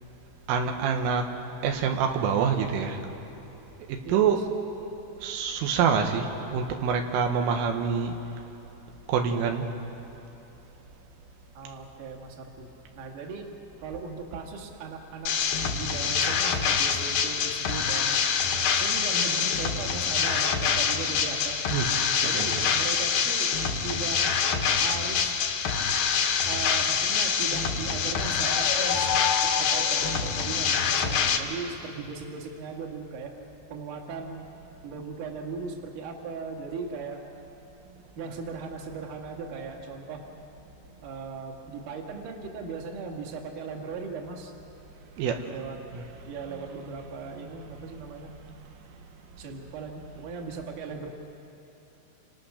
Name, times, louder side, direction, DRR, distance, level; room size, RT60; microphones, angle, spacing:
voice 1, 0.5-1.3 1.6-3.0 3.9-4.4 5.2-8.2 9.1-9.7 21.7-22.8 32.0-32.1 45.2-45.5 45.9-46.1, right 6 dB, 85° right, 4 dB, 4.0 m, -26 dB
voice 2, 4.0-4.4 11.5-12.7 12.9-13.6 13.8-15.3 15.7-18.1 18.7-21.6 22.2-23.5 23.8-24.3 24.8-25.4 26.5-29.1 29.6-33.3 33.7-34.5 34.8-37.2 38.2-40.2 41.0-44.5 45.5-45.8 46.3-48.3 49.4-51.1, right 4 dB, 50° right, 1 dB, 3.2 m, -38 dB
sound 1, 15.3-31.4, left 6 dB, 65° left, 2.7 m, -26 dB
sound 2, 28.1-31.0, left 7 dB, 85° left, 3.7 m, -32 dB
29.5 x 27.0 x 6.5 m, 3.0 s
omnidirectional pair, 5.6 m